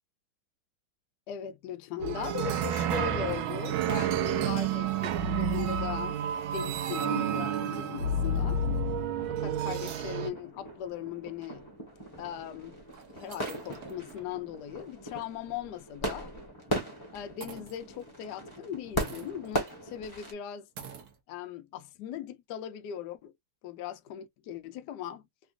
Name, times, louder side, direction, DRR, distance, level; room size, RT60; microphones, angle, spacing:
voice 1, 1.3-6.2 6.5-8.6 9.3-11.6 12.2-12.8 13.1-16.3 17.1-20.7 21.3-23.3 23.6-25.2, left 10 dB, 75° left, 0.9 m, -39 dB
sound 1, 2.0-10.3, right 5 dB, 75° right, 1.4 m, -30 dB
sound 2, 9.0-20.3, equal, 15° left, 1.0 m, -39 dB
sound 3, 11.4-11.5 12.3-12.4 12.9-14.3 14.7-14.8 15.2-15.3 17.4-18.2 19.0-19.8 20.1-20.2 20.8-21.2, right 7 dB, 60° right, 1.1 m, -47 dB
3.8 x 2.5 x 2.4 m
omnidirectional pair, 2.3 m